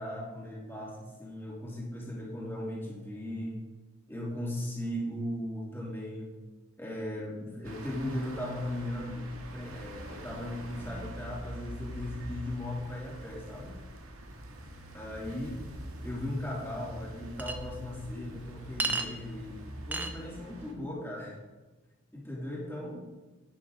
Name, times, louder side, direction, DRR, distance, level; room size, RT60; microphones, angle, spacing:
voice 1, 0.0-3.6 4.1-6.3 6.8-13.7 14.9-15.6 16.0-21.4 22.1-23.1, left 1 dB, 10° left, -4 dB, 2.9 m, -37 dB
sound 1, 7.6-20.7, right 1 dB, 85° right, 1.8 m, -44 dB
Chink clink, 17.4-17.6 18.8-19.1 19.9-20.1, right 3 dB, 10° right, 0.6 m, -30 dB
11.5 x 9.4 x 3.8 m, 1.2 s
head